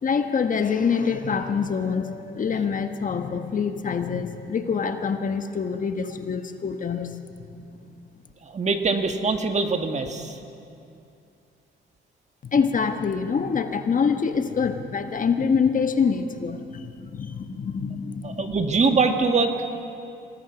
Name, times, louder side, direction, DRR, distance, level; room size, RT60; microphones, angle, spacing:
voice 1, 0.0-7.2 12.5-18.6, left 6 dB, 40° left, 7 dB, 1.3 m, -25 dB
voice 2, 8.5-10.4 18.2-19.6, right 4 dB, 35° right, 6 dB, 1.9 m, -23 dB
26.0 x 19.0 x 6.0 m, 2.6 s
cardioid pair, 90°, 20 cm